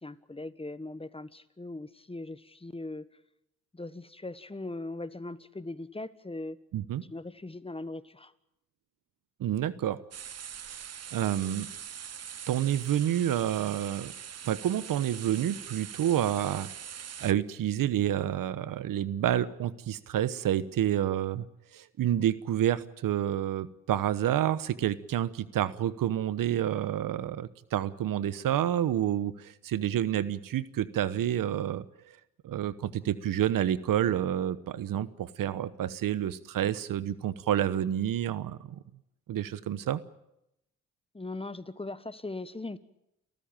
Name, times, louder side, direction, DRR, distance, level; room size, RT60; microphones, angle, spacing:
voice 1, 0.0-3.1 3.7-6.6 7.1-8.3 41.1-42.8, left 2 dB, 15° left, 15 dB, 1.3 m, -39 dB
voice 2, 9.4-10.0 11.1-11.7 12.5-14.1 14.4-16.7 17.2-21.4 21.7-31.8 32.4-38.7 39.3-40.0, right 11 dB, 70° right, 17 dB, 1.1 m, -29 dB
sound 1, 10.1-17.3, right 8 dB, 45° right, 0.9 m, -43 dB
30.0 x 14.0 x 9.0 m, 0.85 s
supercardioid pair, 55°, 34 cm